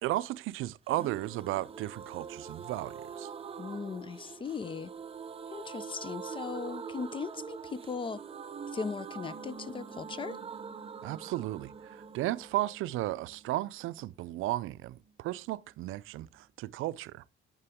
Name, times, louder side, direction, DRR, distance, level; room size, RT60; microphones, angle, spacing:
voice 1, 0.0-3.3 11.0-17.2, right 16 dB, 80° right, 0.4 m, -34 dB
sound 1, 0.9-14.5 14.8-14.9 15.1-15.2, right 6 dB, 30° right, 0.6 m, -44 dB
voice 2, 3.6-4.9 5.5-8.2 8.7-10.4, left 5 dB, 25° left, 0.3 m, -38 dB
9.7 x 6.0 x 3.5 m
cardioid pair, 130°, 21 cm